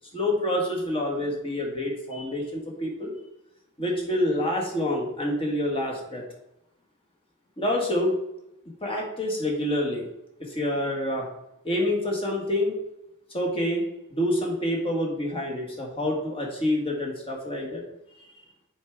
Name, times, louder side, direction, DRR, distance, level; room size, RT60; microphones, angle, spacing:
voice 1, 0.1-3.1 3.8-6.2 7.6-8.1 8.7-10.0 10.4-11.3 11.6-12.7 13.3-17.8, left 1 dB, 25° left, -1 dB, 1.5 m, -27 dB
7.0 x 4.6 x 3.5 m, 0.85 s
head